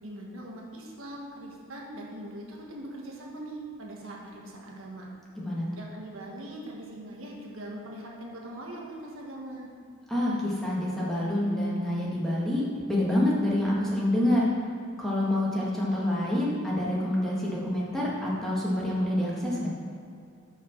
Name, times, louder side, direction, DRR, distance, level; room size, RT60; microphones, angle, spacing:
voice 1, 0.0-5.1 5.7-9.7, right 1 dB, 70° right, -2 dB, 1.5 m, -41 dB
voice 2, 5.3-5.7 10.1-14.5 15.0-19.7, left 1 dB, ahead, -6 dB, 1.6 m, -27 dB
7.1 x 5.9 x 5.9 m, 2.4 s
head